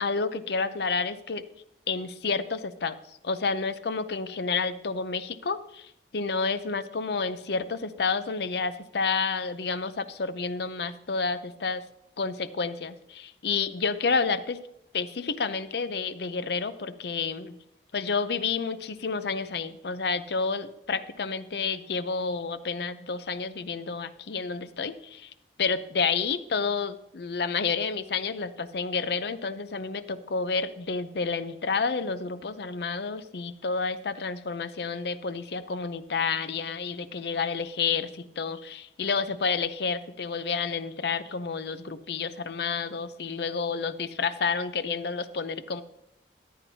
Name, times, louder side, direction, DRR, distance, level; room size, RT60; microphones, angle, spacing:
voice 1, 0.0-1.4 1.9-3.0 3.2-11.8 12.2-14.6 14.9-17.6 17.9-25.3 25.6-45.8, left 5 dB, 65° left, 13 dB, 0.6 m, -30 dB
14.0 x 10.0 x 2.8 m, 0.82 s
head